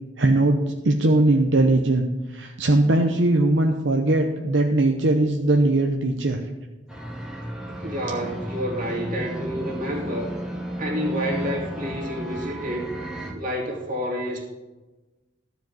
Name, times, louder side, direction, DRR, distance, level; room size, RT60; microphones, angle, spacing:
voice 1, 0.2-0.6 0.8-2.1 2.3-6.4, right 2 dB, 70° right, 3 dB, 0.8 m, -20 dB
sound 1, 6.9-13.3, right 1 dB, 5° right, 1.4 m, -33 dB
voice 2, 7.8-10.3 10.8-12.9 13.3-14.5, equal, 45° right, -2 dB, 2.7 m, -29 dB
13.5 x 5.1 x 7.7 m, 1.2 s
head